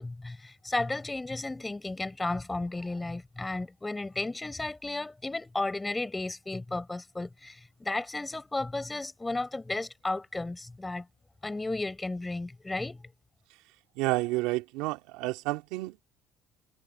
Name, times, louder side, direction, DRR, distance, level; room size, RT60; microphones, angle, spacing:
voice 1, 0.0-11.1 11.4-13.1, left 2 dB, 15° left, 5.2 m, -34 dB
voice 2, 14.0-16.0, right 20 dB, 80° right, 2.3 m, -30 dB
supercardioid pair, 85°, 0 cm